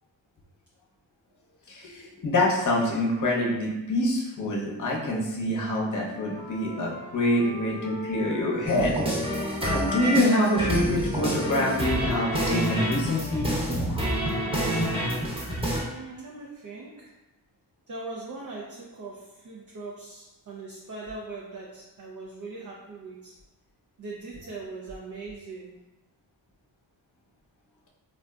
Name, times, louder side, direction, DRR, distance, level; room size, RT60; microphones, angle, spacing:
voice 1, 1.7-9.0 9.6-13.5, left 1 dB, 45° left, -2 dB, 0.8 m, -26 dB
Wind instrument woodwind instrument, 5.9-9.5 9.8-13.7, left 1 dB, 90° left, 0.6 m, -40 dB
sound 1, 8.6-15.8, right 1 dB, 15° right, 0.9 m, -27 dB
voice 2, 15.7-17.1 17.9-23.4 24.0-25.7, right 3 dB, 45° right, -3 dB, 0.5 m, -40 dB
3.6 x 2.4 x 2.2 m, 1.0 s
wide cardioid pair, 80°, 44 cm